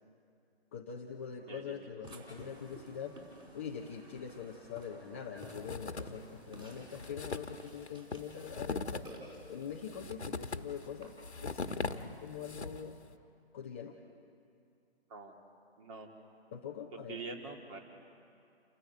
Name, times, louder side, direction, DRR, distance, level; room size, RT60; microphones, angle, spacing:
voice 1, 0.7-3.2 3.5-11.2 11.4-13.0 13.5-14.0 16.5-17.2, left 7 dB, 15° left, 0 dB, 0.5 m, -43 dB
voice 2, 1.4-2.0 15.1-15.3 15.8-16.1 17.1-17.8, right 3 dB, 30° right, 2 dB, 2.6 m, -45 dB
Burping eructation, 2.0-11.1, right 1 dB, 15° right, 4.4 m, -54 dB
sound 1, 5.4-6.3 6.6-6.7 6.9-13.0, left 3 dB, 90° left, 1.3 m, -40 dB
29.0 x 15.0 x 8.1 m, 2.5 s
figure-of-eight pair, 145°, 33 cm